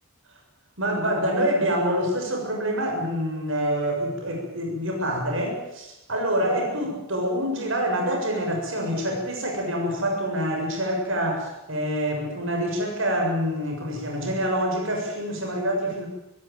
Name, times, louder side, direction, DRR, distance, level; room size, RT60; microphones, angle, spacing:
voice 1, 0.8-16.1, equal, 65° right, 2 dB, 7.1 m, -26 dB
26.0 x 16.0 x 9.2 m, 0.90 s
head